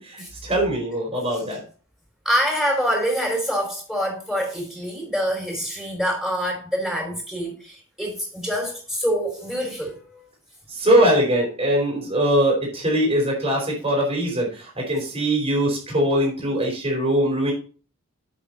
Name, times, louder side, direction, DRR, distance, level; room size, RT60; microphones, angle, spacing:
voice 1, 0.0-1.6 10.7-17.5, equal, 25° right, 4.4 m, -22 dB
voice 2, 2.2-10.2, equal, ahead, 5.0 m, -26 dB
8.5 x 7.5 x 4.1 m
head